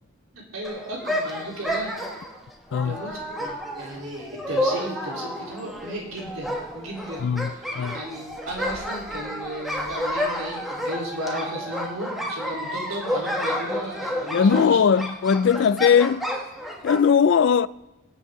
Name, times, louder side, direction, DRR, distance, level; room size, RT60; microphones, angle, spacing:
voice 1, 0.3-1.9 2.7-7.2 7.5-7.6 7.9-14.8, right 1 dB, 80° right, 3.7 m, -35 dB
sound 1, 0.6-17.1, equal, ahead, 1.3 m, -30 dB
voice 2, 7.2-8.0 14.3-16.3 16.8-17.7, left 7 dB, 60° left, 0.3 m, -19 dB
23.5 x 8.1 x 3.7 m
head